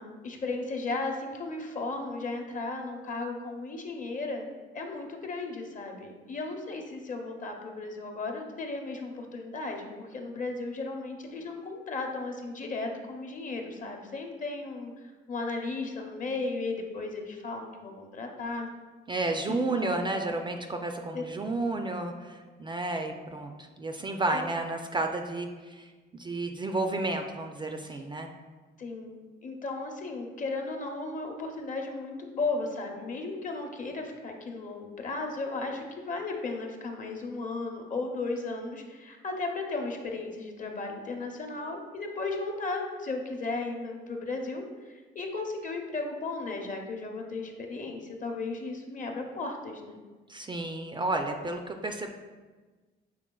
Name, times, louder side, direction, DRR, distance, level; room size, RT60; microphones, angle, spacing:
voice 1, 0.0-14.9 15.3-18.7 19.5-20.1 21.1-21.2 24.3-24.4 28.8-49.9, left 3 dB, 40° left, 3 dB, 0.7 m, -35 dB
voice 2, 19.1-28.3 50.3-52.1, right 2 dB, 25° right, 4 dB, 0.3 m, -32 dB
6.1 x 3.5 x 2.3 m, 1.3 s
cardioid pair, 90°, 20 cm